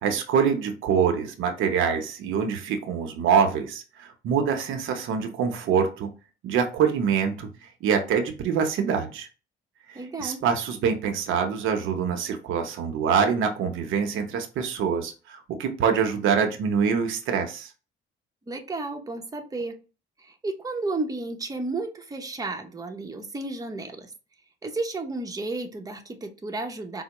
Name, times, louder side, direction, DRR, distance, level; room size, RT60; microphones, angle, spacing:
voice 1, 0.0-6.1 6.4-7.5 7.8-9.3 9.9-17.7, right 6 dB, 80° right, 5 dB, 0.7 m, -25 dB
voice 2, 9.9-10.4 18.5-19.8 20.2-24.1 24.6-27.0, right 2 dB, 20° right, 4 dB, 0.7 m, -32 dB
4.3 x 2.0 x 2.9 m, 0.33 s
cardioid pair, 90°, 20 cm